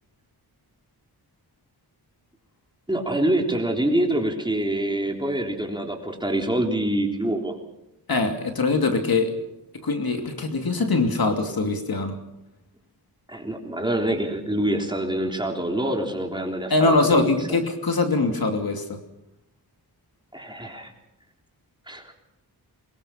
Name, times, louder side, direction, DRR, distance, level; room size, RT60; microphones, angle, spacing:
voice 1, 2.9-7.5 13.3-17.3 20.3-20.9 21.9-22.1, right 1 dB, 10° right, 1 dB, 3.6 m, -25 dB
voice 2, 8.1-9.3 9.8-12.2 16.7-19.0, left 3 dB, 60° left, 4 dB, 2.8 m, -22 dB
24.0 x 21.5 x 5.9 m, 0.88 s
wide cardioid pair, 120°, 40 cm